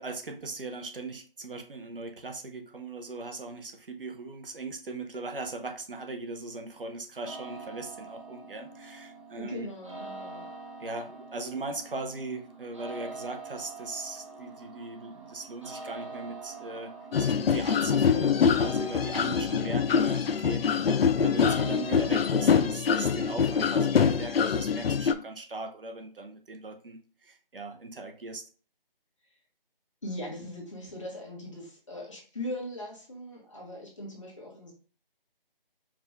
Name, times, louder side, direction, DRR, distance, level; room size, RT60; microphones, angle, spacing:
voice 1, 0.0-9.7 10.8-16.9 17.2-28.4, right 3 dB, 70° right, 5 dB, 0.9 m, -39 dB
sound 1, 7.2-22.4, right 3 dB, 35° right, 0.7 m, -45 dB
voice 2, 9.4-10.5 30.0-34.7, left 1 dB, 30° left, -3 dB, 1.2 m, -40 dB
sound 2, 17.1-25.1, left 6 dB, 90° left, 0.5 m, -24 dB
4.9 x 2.5 x 3.5 m, 0.39 s
figure-of-eight pair, 180°, 29 cm